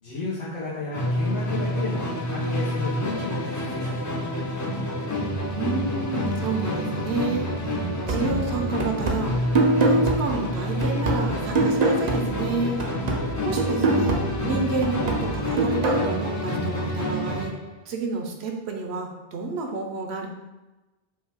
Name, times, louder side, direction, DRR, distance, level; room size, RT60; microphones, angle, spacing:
voice 1, 0.0-4.0 13.0-13.4, left 3 dB, 75° left, -9 dB, 1.2 m, -33 dB
Musical instrument, 0.9-17.6, equal, 25° left, 0.4 m, -28 dB
voice 2, 5.5-7.7 8.0-9.5 9.8-12.8 13.4-17.5 17.9-20.3, right 3 dB, 70° right, 2 dB, 0.9 m, -30 dB
sound 1, 8.1-12.5 12.8-16.1, right 2 dB, 50° right, 0.6 m, -25 dB
5.0 x 2.3 x 3.4 m, 1.1 s
omnidirectional pair, 1.2 m